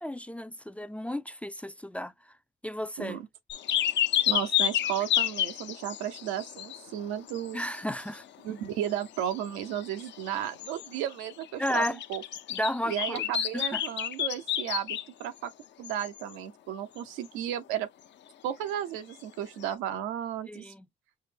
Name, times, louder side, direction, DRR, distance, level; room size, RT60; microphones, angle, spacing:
voice 1, 0.0-2.1 2.6-3.2 7.5-8.2 11.6-12.0 12.5-13.3 13.5-13.8 20.5-20.9, left 1 dB, 5° left, 0.4 m, -33 dB
sound 1, 3.5-7.0 7.3-8.2 8.6-8.7 8.8-15.3 15.8-16.2 19.6-19.7, left 11 dB, 60° left, 0.7 m, -30 dB
voice 2, 4.3-7.6 8.4-12.2 12.9-15.5 15.8-17.9 18.4-20.7, right 10 dB, 85° right, 0.8 m, -34 dB
5.6 x 2.0 x 3.3 m
supercardioid pair, 65°, 21 cm